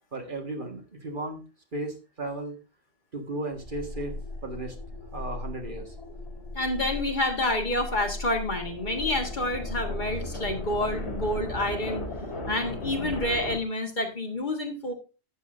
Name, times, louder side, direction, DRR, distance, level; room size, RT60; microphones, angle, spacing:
voice 1, 0.1-1.4 1.7-2.5 3.1-4.1 4.4-4.8 5.1-6.0, right 2 dB, 50° right, 2 dB, 1.8 m, -35 dB
sound 1, 3.5-13.6, left 1 dB, 70° left, 3.3 m, -36 dB
voice 2, 6.5-12.1 12.5-14.9, left 1 dB, 45° left, 4 dB, 1.6 m, -28 dB
12.0 x 8.3 x 2.6 m, 0.31 s
omnidirectional pair, 1.1 m